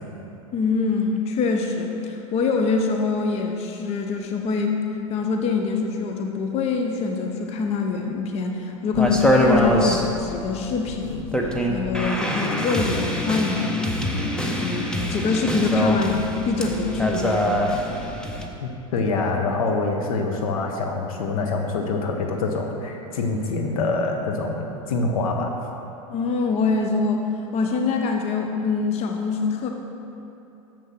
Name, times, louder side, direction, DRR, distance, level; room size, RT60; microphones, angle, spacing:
voice 1, 0.5-4.8 5.1-17.5 26.1-27.2 27.5-29.7, left 4 dB, 35° left, 3 dB, 0.7 m, -24 dB
sound 1, 8.9-18.5, equal, 5° left, 0.8 m, -24 dB
voice 2, 18.6-25.5, left 3 dB, 75° left, 2 dB, 1.1 m, -25 dB
6.7 x 6.3 x 5.9 m, 2.9 s
hypercardioid pair, 100°, 18 cm